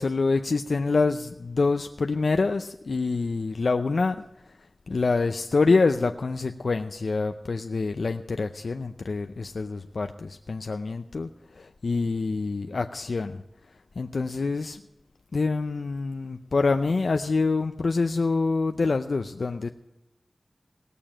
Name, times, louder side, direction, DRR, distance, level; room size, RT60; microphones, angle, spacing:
voice 1, 0.0-4.2 4.9-11.3 11.6-13.4 14.0-14.8 15.3-19.7, left 3 dB, 80° left, 7 dB, 0.6 m, -26 dB
18.0 x 6.9 x 7.4 m, 0.89 s
wide cardioid pair, 50°, 0 cm